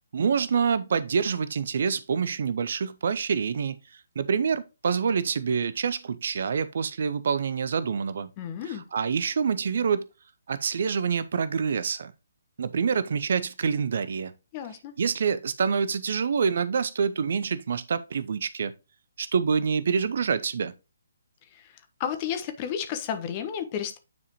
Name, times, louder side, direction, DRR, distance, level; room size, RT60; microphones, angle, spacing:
voice 1, 0.1-3.8 4.2-8.3 8.7-10.0 10.5-12.1 12.6-14.3 15.0-18.7 19.2-20.7, right 6 dB, 55° right, 0.6 m, -26 dB
voice 2, 8.4-8.8 14.5-14.9 21.5-21.7 22.0-24.0, left 9 dB, 30° left, 1.3 m, -32 dB
9.4 x 4.9 x 3.0 m
figure-of-eight pair, 135°, 0 cm